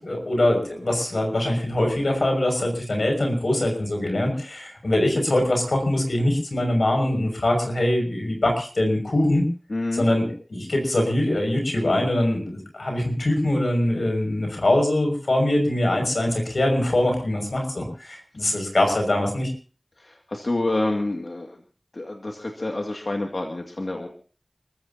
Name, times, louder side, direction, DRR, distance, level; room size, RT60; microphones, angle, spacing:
voice 1, 0.0-9.4 10.0-19.5, left 1 dB, 85° left, 3 dB, 6.0 m, -23 dB
voice 2, 9.7-10.1 20.0-21.6 21.9-24.1, left 2 dB, 65° left, 2 dB, 2.2 m, -28 dB
30.0 x 14.5 x 2.8 m, 0.41 s
wide cardioid pair, 55°, 0 cm